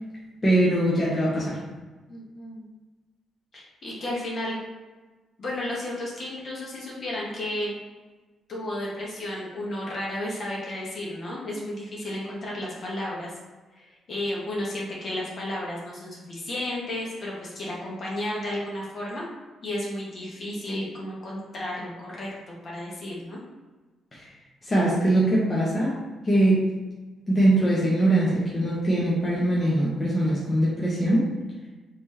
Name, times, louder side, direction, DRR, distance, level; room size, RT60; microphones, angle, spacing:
voice 1, 0.4-1.6 24.1-24.3 24.6-26.7 27.3-31.4, right 1 dB, 20° left, -7 dB, 0.9 m, -22 dB
voice 2, 2.1-2.6 3.5-4.6 5.4-7.7 8.5-13.3 13.8-19.2 19.6-22.3 22.6-23.4, left 1 dB, 45° left, -4 dB, 1.3 m, -33 dB
4.3 x 2.8 x 3.2 m, 1.2 s
cardioid pair, 130°, 0 cm